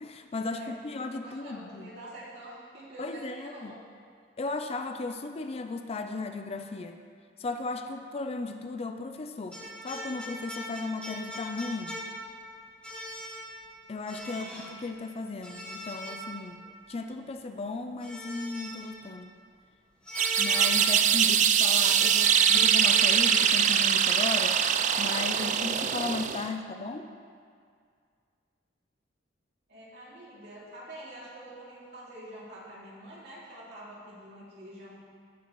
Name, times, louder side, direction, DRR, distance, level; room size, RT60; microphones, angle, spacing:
voice 1, 0.0-1.9 3.0-3.8 4.4-7.0 7.4-12.0 13.9-14.5 14.8-19.3 20.4-24.6 25.0-27.1, left 3 dB, 35° left, 7 dB, 0.4 m, -36 dB
voice 2, 0.6-3.7 14.3-14.5 29.7-35.0, right 1 dB, 65° right, -7 dB, 2.6 m, -46 dB
sound 1, 9.5-12.5 12.8-13.7 14.1-14.8 15.4-16.7 18.0-19.0 20.1-21.2 21.6-23.1, left 1 dB, 5° left, 1.1 m, -39 dB
sound 2, 20.2-26.5, right 8 dB, 40° right, 0.3 m, -23 dB
16.5 x 5.6 x 3.0 m, 2.2 s
head